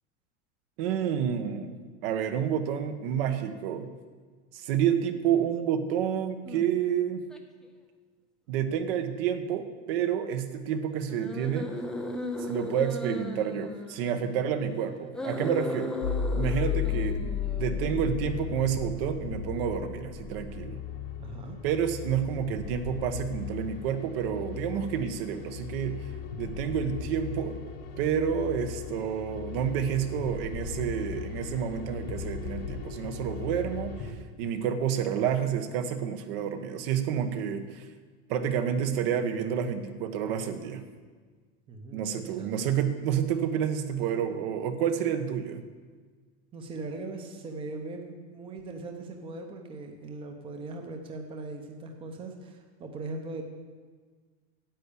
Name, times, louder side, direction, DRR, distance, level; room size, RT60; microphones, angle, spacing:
voice 1, 0.8-1.8 2.0-3.9 4.5-7.2 8.5-11.7 12.5-16.0 16.4-20.8 21.6-26.0 26.4-27.6 28.0-37.8 38.3-40.8 41.9-45.6, right 8 dB, 55° right, 8 dB, 1.2 m, -29 dB
sound 1, 6.4-6.7 7.3-7.4 11.1-14.4 15.1-18.0, left 1 dB, ahead, 0.4 m, -36 dB
sound 2, 16.0-34.1, left 7 dB, 80° left, 1.9 m, -36 dB
voice 2, 21.2-21.6 41.7-42.7 46.5-53.4, right 2 dB, 15° right, 4 dB, 0.8 m, -40 dB
10.0 x 8.2 x 8.5 m, 1.5 s
supercardioid pair, 170°, 34 cm